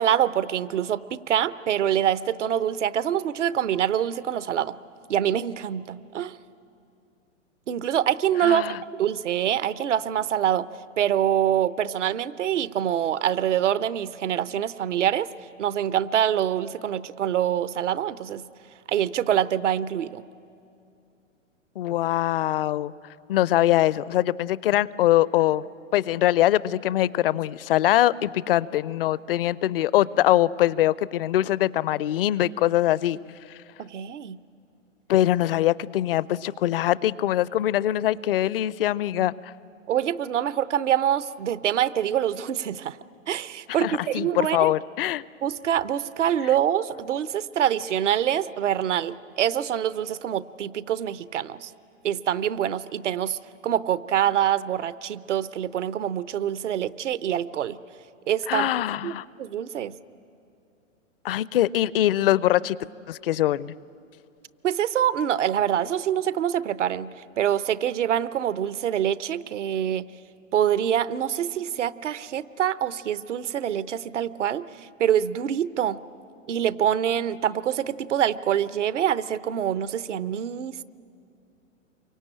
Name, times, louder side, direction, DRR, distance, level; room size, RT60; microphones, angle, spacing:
voice 1, 0.0-4.8 5.1-6.3 7.7-10.7 11.0-15.3 15.6-18.4 18.9-20.2 33.8-34.4 39.9-43.0 43.3-44.7 45.4-51.7 52.0-53.4 53.6-57.8 58.3-58.7 59.0-59.9 64.6-70.1 70.5-74.7 75.0-76.0 76.5-80.7, right 10 dB, 65° right, 16 dB, 0.9 m, -25 dB
voice 2, 8.4-8.8 21.8-22.9 23.3-25.6 25.9-33.2 35.1-39.3 43.8-45.2 58.5-59.2 61.2-62.8 63.1-63.7, left 13 dB, 45° left, 21 dB, 0.6 m, -23 dB
28.0 x 24.0 x 8.8 m, 2.6 s
figure-of-eight pair, 115°, 39 cm